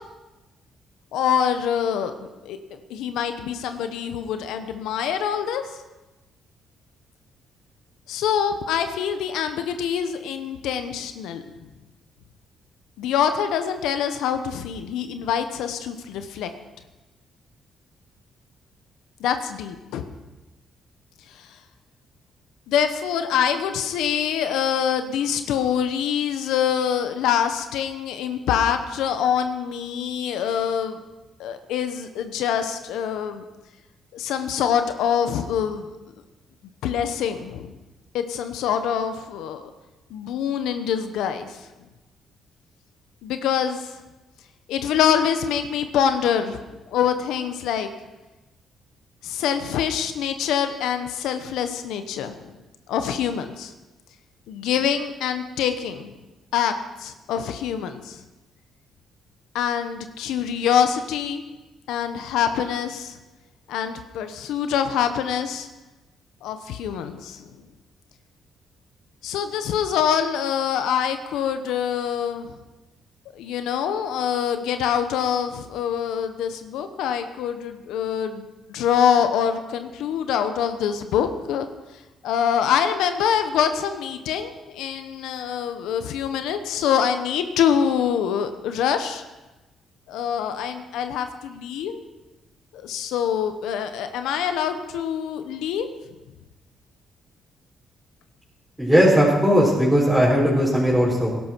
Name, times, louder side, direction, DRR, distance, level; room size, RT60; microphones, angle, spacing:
voice 1, 1.1-2.1 2.4-2.6 2.9-5.6 8.1-11.4 13.0-16.5 19.2-20.1 21.3-21.5 22.7-31.0 31.4-33.4 34.1-35.9 36.8-37.7 38.1-39.7 40.1-41.6 43.2-43.9 44.7-46.6 46.9-47.9 49.2-52.4 52.9-53.7 54.5-56.1 56.5-56.7 57.0-58.2 59.5-61.4 61.9-63.2 63.7-65.7 66.4-67.4 69.2-72.6 73.3-81.7 82.2-89.2 90.1-92.0 92.7-95.9, left 8 dB, 90° left, 8 dB, 0.9 m, -25 dB
voice 2, 98.8-101.3, equal, 5° right, -8 dB, 4.9 m, -18 dB
17.0 x 12.0 x 4.6 m, 1.1 s
cardioid pair, 90°, 0 cm